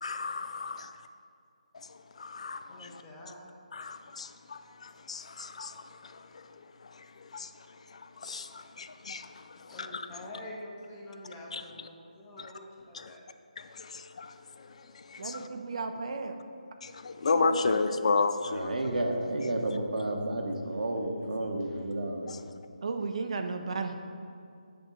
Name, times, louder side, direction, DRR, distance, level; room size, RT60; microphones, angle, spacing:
voice 1, 0.0-0.9 1.7-3.0 3.7-10.1 11.5-11.6 12.4-12.5 12.9-13.2 13.6-15.5 16.8-18.8 22.3-22.4, left 4 dB, 50° left, 10 dB, 0.4 m, -34 dB
voice 2, 2.7-3.5 9.7-13.2 20.6-20.8 21.6-21.9, left 1 dB, 15° left, -2 dB, 0.9 m, -46 dB
voice 3, 15.2-16.4 17.3-17.8 22.8-23.9, right 4 dB, 50° right, 6 dB, 0.6 m, -34 dB
voice 4, 18.5-22.5, right 1 dB, 80° right, 2 dB, 1.1 m, -31 dB
8.8 x 3.6 x 5.3 m, 2.4 s
figure-of-eight pair, 160°, 4 cm